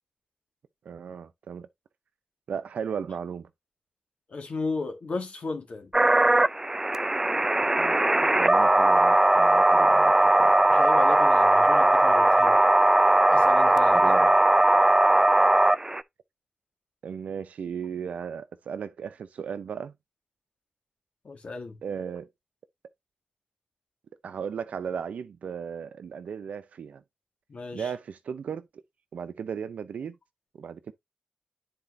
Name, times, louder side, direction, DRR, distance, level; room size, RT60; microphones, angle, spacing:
voice 1, 0.8-1.7 2.5-3.5 7.8-10.5 13.9-14.3 17.0-19.9 21.8-22.3 24.2-27.0 27.7-28.7 29.1-30.2 30.5-30.9, right 7 dB, 90° right, 0.6 m, -35 dB
voice 2, 4.3-5.9 10.7-12.6 13.3-14.1 21.2-21.8 27.5-27.9, left 3 dB, 65° left, 2.0 m, -34 dB
sound 1, 5.9-16.0, right 1 dB, 20° right, 0.5 m, -19 dB
9.9 x 4.3 x 2.7 m
cardioid pair, 50°, 2 cm